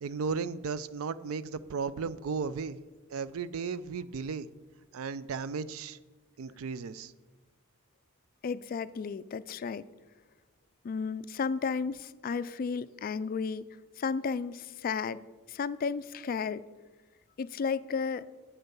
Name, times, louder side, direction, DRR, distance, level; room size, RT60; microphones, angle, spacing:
voice 1, 0.0-2.8 3.1-4.5 4.9-6.0 6.4-7.1, right 5 dB, 70° right, 16 dB, 0.4 m, -35 dB
voice 2, 8.4-9.8 10.8-13.7 14.0-15.2 15.5-16.6 17.4-18.2, left 5 dB, 45° left, 16 dB, 0.3 m, -33 dB
8.0 x 7.8 x 5.4 m, 1.3 s
head